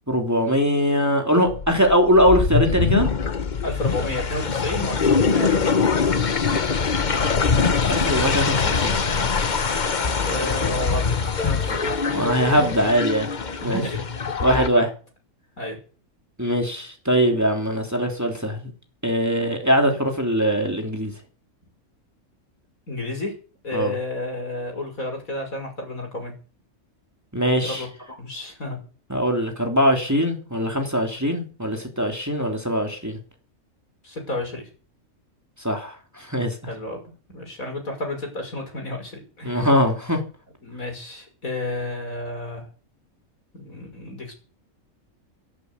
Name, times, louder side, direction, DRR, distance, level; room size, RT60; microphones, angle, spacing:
voice 1, 0.1-3.1 7.9-9.0 11.7-11.8 12.1-13.3 13.6-13.8 14.4-14.9 16.4-18.7 19.0-21.1 23.7-23.9 27.3-27.8 29.1-33.2 35.6-36.6 39.4-40.2, equal, 10° right, 3 dB, 3.1 m, -21 dB
sound 1, 1.5-14.7, left 5 dB, 35° left, 1.0 m, -23 dB
voice 2, 3.6-6.1 10.2-11.1 11.4-11.9 13.6-14.0 14.5-14.9 15.6-15.8 22.9-23.3 23.6-26.3 27.6-27.9 28.2-28.8 34.0-34.7 36.7-37.0 37.3-39.7 40.6-42.7 43.5-44.3, left 1 dB, 75° left, 3 dB, 6.2 m, -31 dB
14.0 x 11.5 x 8.2 m, 0.38 s
omnidirectional pair, 1.5 m